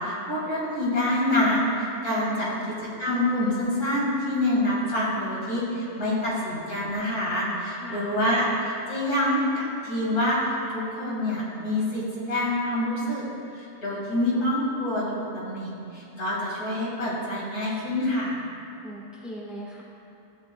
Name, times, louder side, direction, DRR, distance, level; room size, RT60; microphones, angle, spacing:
voice 1, 0.0-2.5 3.0-13.2 13.5-18.4, left 1 dB, 75° left, -6 dB, 2.5 m, -26 dB
voice 2, 2.2-2.7 7.7-8.1 18.8-19.8, equal, ahead, -5 dB, 1.2 m, -39 dB
13.0 x 8.6 x 2.2 m, 2.6 s
omnidirectional pair, 1.3 m